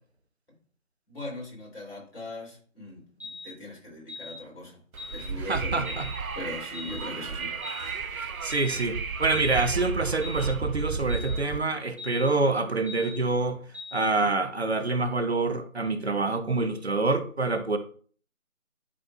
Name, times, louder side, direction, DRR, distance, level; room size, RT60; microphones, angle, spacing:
voice 1, 1.1-4.8 5.1-6.1 6.3-7.6, left 2 dB, 45° left, 3.3 m, -40 dB
sound 1, 3.2-3.5 4.1-4.4 5.0-5.2 5.8-6.1 6.7-7.0 7.6-7.9 8.5-8.8 9.3-9.6 10.2-10.5 11.1-11.4 12.0-12.3 12.9-13.1 13.7-14.0, left 3 dB, 10° right, 1.3 m, -41 dB
Wind, 4.9-11.6, right 4 dB, 85° right, 0.8 m, -33 dB
voice 2, 5.5-6.1 8.2-13.6 13.9-17.8, right 3 dB, 50° right, 0.9 m, -26 dB
11.0 x 4.4 x 2.4 m
figure-of-eight pair, 175°, 41 cm